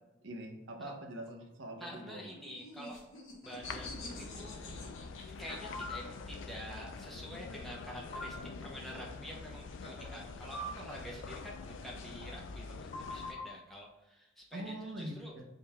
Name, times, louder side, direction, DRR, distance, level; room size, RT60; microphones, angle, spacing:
voice 1, 0.2-2.2 14.5-15.4, right 1 dB, 70° right, 2 dB, 0.6 m, -43 dB
voice 2, 1.8-3.0 3.4-4.6 5.4-15.3, equal, ahead, -2 dB, 0.5 m, -48 dB
sound 1, 2.2-6.2 7.5-11.7, left 2 dB, 90° left, 1.0 m, -49 dB
sound 2, 3.6-13.3, left 4 dB, 75° left, 0.3 m, -46 dB
sound 3, 5.7-6.0 8.1-8.3 10.5-10.7 12.9-13.5, left 1 dB, 45° left, 0.9 m, -40 dB
3.7 x 2.3 x 4.0 m, 1.0 s
head